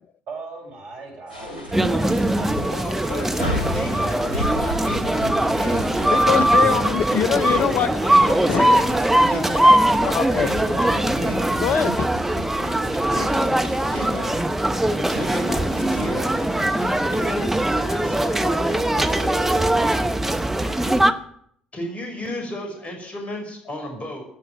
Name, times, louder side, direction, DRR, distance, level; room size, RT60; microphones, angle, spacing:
voice 1, 0.3-4.0, right 3 dB, 60° right, -4 dB, 6.0 m, -39 dB
sound 1, 1.3-17.4, equal, 85° left, 1.3 m, -36 dB
sound 2, 1.3-6.8, right 1 dB, 85° right, 7.0 m, -41 dB
sound 3, 1.7-21.1, right 1 dB, 5° right, 0.9 m, -21 dB
voice 2, 2.7-6.6 7.1-9.7 10.2-11.4 13.1-13.5 13.9-14.3 15.1-16.4 17.1-19.9 21.7-24.2, left 1 dB, 30° left, 2 dB, 5.4 m, -32 dB
voice 3, 6.3-7.9 8.5-8.8 10.0-10.5 11.5-12.1, left 9 dB, 45° left, 16 dB, 0.7 m, -23 dB
17.0 x 6.2 x 9.0 m, 0.66 s
figure-of-eight pair, 50°, 4 cm